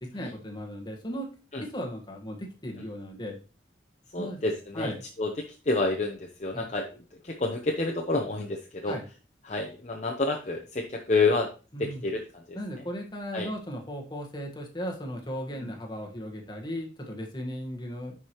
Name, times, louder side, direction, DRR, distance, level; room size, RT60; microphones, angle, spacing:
voice 1, 0.0-1.3 1.6-3.4 4.1-4.4 4.7-5.0 6.5-6.7 8.9-9.0 11.7-12.1 12.5-18.1, equal, 25° left, 1 dB, 1.4 m, -36 dB
voice 2, 4.1-4.9 5.2-5.3 5.7-6.9 7.2-8.9 9.5-11.5 11.8-12.2 12.5-12.6 13.3-13.5 15.6-15.7, left 3 dB, 40° left, 0 dB, 0.8 m, -28 dB
10.5 x 4.8 x 3.0 m, 0.35 s
head